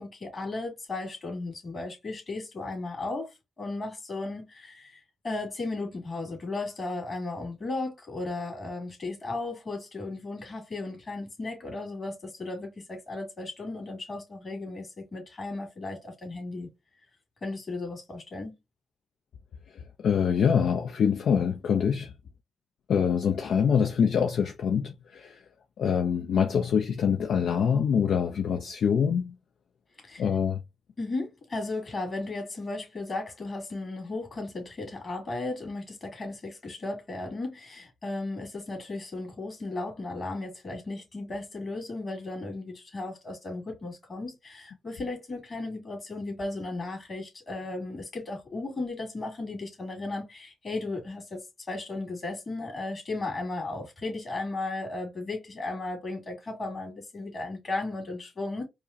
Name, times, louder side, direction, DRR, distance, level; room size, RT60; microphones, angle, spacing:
voice 1, 0.0-3.3 3.6-16.7 17.4-18.6 30.0-30.2 31.0-58.7, left 2 dB, 45° left, 2.2 m, -35 dB
voice 2, 19.7-22.1 22.9-25.4 25.8-29.3 30.2-30.6, left 7 dB, 70° left, 0.4 m, -25 dB
4.7 x 2.0 x 2.6 m
supercardioid pair, 50°, 0 cm